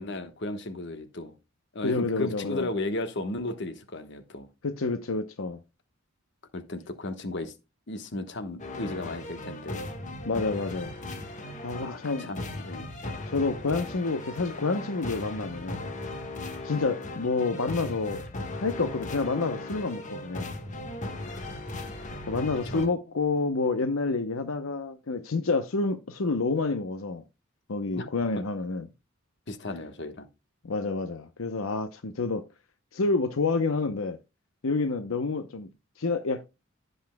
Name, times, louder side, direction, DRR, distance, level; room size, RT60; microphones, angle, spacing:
voice 1, 0.0-1.3 1.7-4.5 6.5-7.5 7.9-9.9 11.8-12.9 21.2-21.3 22.7-22.9 27.9-28.1 28.4-28.5 29.5-30.3, left 2 dB, 60° left, 1.2 m, -35 dB
voice 2, 1.8-2.7 4.6-5.6 10.2-10.9 11.6-12.3 13.3-15.8 16.6-18.2 18.6-20.5 22.3-27.2 27.7-28.9 30.6-32.4 32.9-34.2 34.6-35.7 36.0-36.4, left 3 dB, 85° left, 0.8 m, -28 dB
sound 1, 8.6-22.9, left 2 dB, 40° left, 1.5 m, -37 dB
16.0 x 5.5 x 2.2 m
head